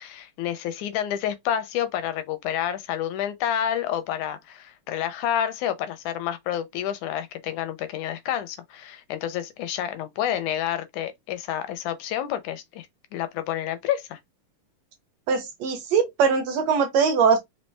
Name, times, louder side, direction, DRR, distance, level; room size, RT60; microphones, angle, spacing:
voice 1, 0.0-12.9 13.1-14.2, left 10 dB, 80° left, 1.9 m, -29 dB
voice 2, 15.3-17.4, right 6 dB, 70° right, 1.7 m, -21 dB
5.3 x 2.9 x 3.3 m
omnidirectional pair, 3.8 m